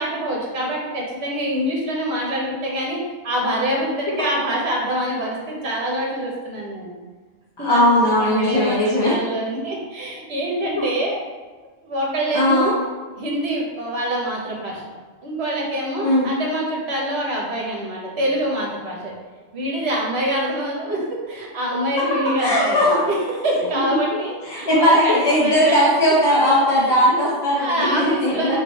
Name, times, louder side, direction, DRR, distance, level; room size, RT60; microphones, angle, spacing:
voice 1, 0.0-6.9 7.6-7.8 8.2-11.2 11.8-12.8 13.2-14.8 15.2-19.1 19.5-25.9 26.8-26.9 27.6-28.6, right 1 dB, 70° right, -2 dB, 1.2 m, -25 dB
voice 2, 7.6-9.1 10.8-10.9 12.3-12.7 16.0-16.3 22.4-23.0 23.9-24.0 24.5-28.6, left 1 dB, 30° left, -7 dB, 0.6 m, -18 dB
4.1 x 2.7 x 4.0 m, 1.3 s
omnidirectional pair, 1.1 m